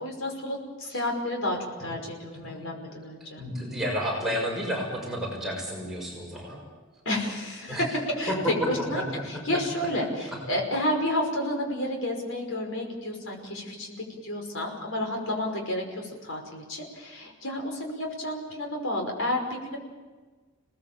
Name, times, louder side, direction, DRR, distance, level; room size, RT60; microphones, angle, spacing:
voice 1, 0.0-3.4 7.1-7.9 8.1-9.0 9.3-19.8, left 1 dB, 80° left, 1 dB, 5.4 m, -31 dB
voice 2, 2.5-6.6 7.7-7.9 8.3-8.5 8.9-9.0, equal, ahead, -3 dB, 6.2 m, -31 dB
29.5 x 19.5 x 7.4 m, 1.3 s
head